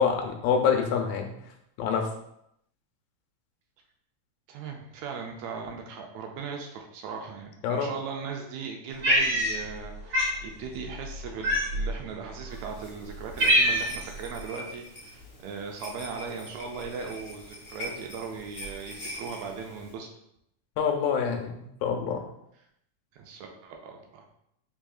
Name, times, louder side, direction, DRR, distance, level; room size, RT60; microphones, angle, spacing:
voice 1, 0.0-1.3 1.8-2.1 7.6-7.9 20.8-22.2, left 6 dB, 85° left, 3 dB, 2.0 m, -26 dB
voice 2, 4.5-20.1 23.1-24.2, right 5 dB, 80° right, 2 dB, 1.8 m, -38 dB
Cat, 9.0-9.8 10.1-10.4 11.4-11.9 12.6-12.7 13.1-14.1, equal, 60° right, 2.0 m, -23 dB
sound 1, 12.5-19.9, left 1 dB, 70° left, 0.9 m, -43 dB
4.8 x 3.5 x 2.3 m, 0.75 s
omnidirectional pair, 3.4 m